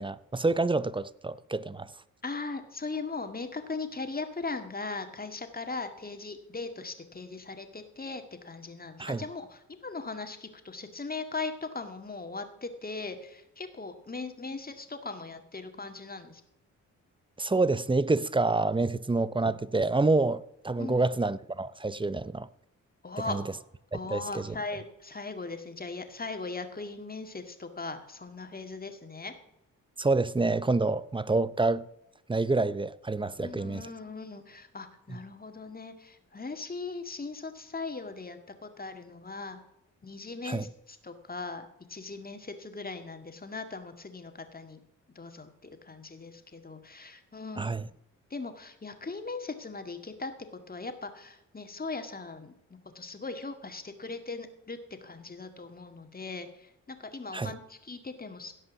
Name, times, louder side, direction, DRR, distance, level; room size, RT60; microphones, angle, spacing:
voice 1, 0.0-1.9 9.0-9.2 17.4-22.5 23.3-23.4 24.1-24.5 30.0-31.9 32.3-33.8 40.4-40.7 47.6-47.9 57.3-57.5, right 3 dB, 15° right, 0.6 m, -27 dB
voice 2, 2.2-16.4 20.8-21.0 23.0-23.4 23.9-29.3 33.4-39.6 40.0-44.8 45.2-47.7 48.3-50.3 50.7-52.5 52.9-58.5, left 3 dB, 30° left, 1.9 m, -39 dB
16.5 x 5.5 x 7.1 m
cardioid pair, 60°, 32 cm